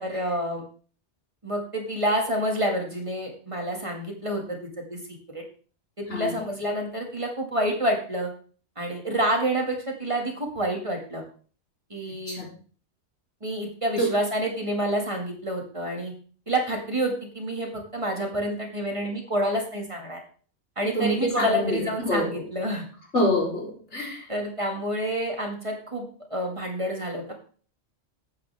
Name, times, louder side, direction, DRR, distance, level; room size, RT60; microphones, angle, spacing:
voice 1, 0.0-0.6 1.4-4.6 4.9-5.0 5.3-5.4 6.0-8.3 8.8-11.2 11.9-12.4 13.4-16.1 16.5-20.2 20.8-22.8 24.3-26.0 26.3-27.3, right 1 dB, 25° right, 1 dB, 2.3 m, -28 dB
voice 2, 6.1-6.4 12.1-12.5 14.0-14.2 20.9-22.4 23.1-24.3, equal, 85° left, -2 dB, 4.1 m, -27 dB
12.0 x 9.0 x 3.6 m, 0.41 s
omnidirectional pair, 1.2 m